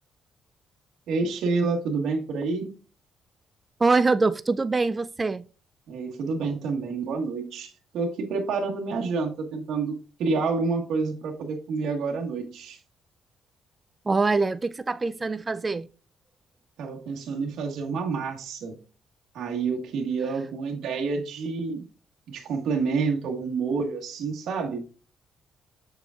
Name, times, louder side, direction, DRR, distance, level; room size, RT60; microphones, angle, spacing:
voice 1, 1.1-2.7 5.9-12.8 16.8-18.7 19.3-21.8 22.3-24.8, right 4 dB, 75° right, 1.5 m, -28 dB
voice 2, 3.8-5.4 14.1-15.9, right 3 dB, 25° right, 0.3 m, -24 dB
6.9 x 6.3 x 2.4 m
cardioid pair, 90°, 0 cm